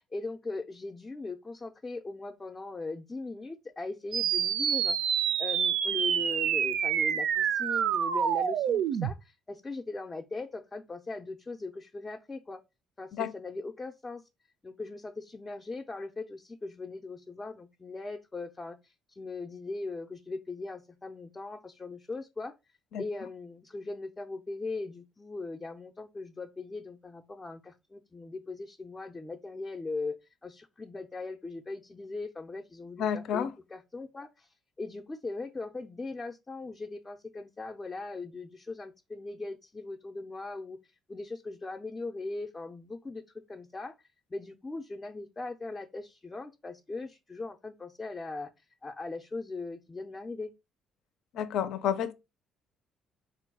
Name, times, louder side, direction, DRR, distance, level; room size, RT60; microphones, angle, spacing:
voice 1, 0.0-5.1 5.4-12.6 13.0-14.2 14.6-22.5 23.0-43.2 43.5-43.9 44.3-48.5 48.8-50.5, left 3 dB, 20° left, 0.4 m, -39 dB
sound 1, 4.1-9.1, right 8 dB, 65° right, 0.5 m, -27 dB
voice 2, 33.0-33.5 51.3-52.1, left 8 dB, 70° left, 0.5 m, -30 dB
4.3 x 2.2 x 4.6 m
cardioid pair, 140°, 0 cm